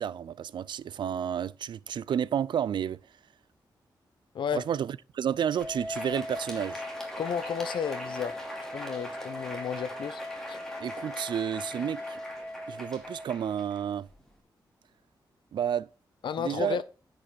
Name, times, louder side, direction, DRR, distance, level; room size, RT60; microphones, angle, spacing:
voice 1, 0.0-3.0 4.5-6.8 10.8-12.2 12.7-14.1 15.5-15.9 16.4-16.8, right 9 dB, 70° right, 0.4 m, -31 dB
Crowd, 5.4-14.3, equal, 5° left, 2.7 m, -43 dB
sound 1, 5.6-13.3, left 1 dB, 20° left, 2.2 m, -39 dB
voice 2, 7.2-8.4 8.7-10.2 10.5-10.6 16.2-16.8, left 7 dB, 80° left, 0.8 m, -32 dB
9.9 x 5.2 x 5.8 m
wide cardioid pair, 135°, 8 cm